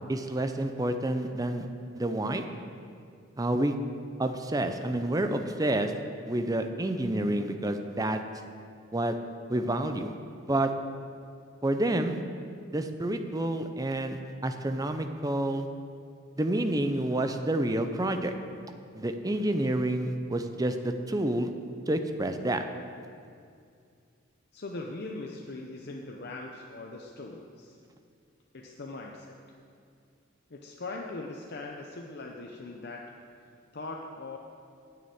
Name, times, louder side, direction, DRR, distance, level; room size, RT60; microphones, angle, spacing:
voice 1, 0.1-1.7 1.9-2.4 3.4-3.7 4.2-5.9 6.3-8.2 8.9-9.2 9.5-10.1 10.5-10.7 11.6-12.2 12.7-15.7 16.4-18.3 18.9-21.5 21.9-22.6, right 1 dB, 20° right, 7 dB, 0.6 m, -29 dB
voice 2, 24.5-27.8 28.5-29.3 30.5-33.0 33.7-34.4, left 2 dB, 55° left, 0 dB, 0.7 m, -40 dB
9.6 x 6.8 x 8.7 m, 2.3 s
head